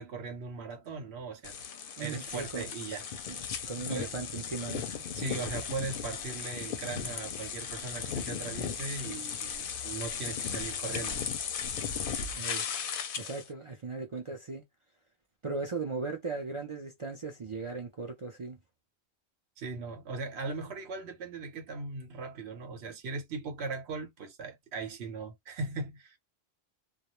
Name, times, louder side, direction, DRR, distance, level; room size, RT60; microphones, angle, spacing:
voice 1, 0.0-1.5 2.0-3.1 3.9-4.1 5.1-11.2 19.6-26.2, right 4 dB, 85° right, 1.0 m, -39 dB
sound 1, 1.4-13.5, left 7 dB, 65° left, 0.7 m, -36 dB
voice 2, 2.0-2.7 3.3-3.4 3.7-5.0 12.3-12.7 13.2-14.6 15.4-18.6, right 4 dB, 45° right, 0.4 m, -37 dB
2.3 x 2.1 x 2.9 m
omnidirectional pair, 1.1 m